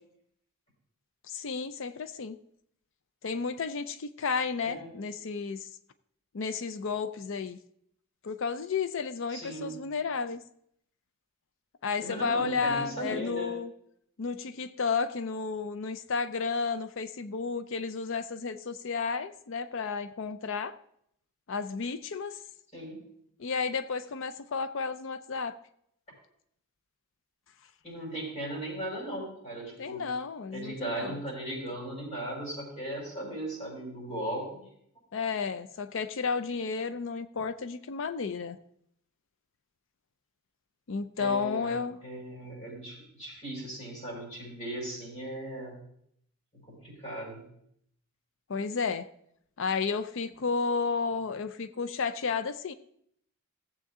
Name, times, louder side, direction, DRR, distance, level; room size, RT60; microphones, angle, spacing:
voice 1, 1.3-2.4 3.2-5.7 6.3-7.6 8.2-10.4 11.8-13.7 14.2-20.7 21.5-22.4 23.4-25.6 29.8-31.1 35.1-38.6 40.9-42.0 48.5-49.1 49.6-52.7, left 5 dB, 60° left, 12 dB, 0.5 m, -32 dB
voice 2, 9.3-9.8 12.0-13.5 22.7-23.0 27.8-30.0 30.5-34.7 41.2-41.7 42.0-45.8 46.5-47.4, right 1 dB, 30° left, -4 dB, 5.6 m, -37 dB
16.0 x 7.5 x 3.7 m, 0.70 s
head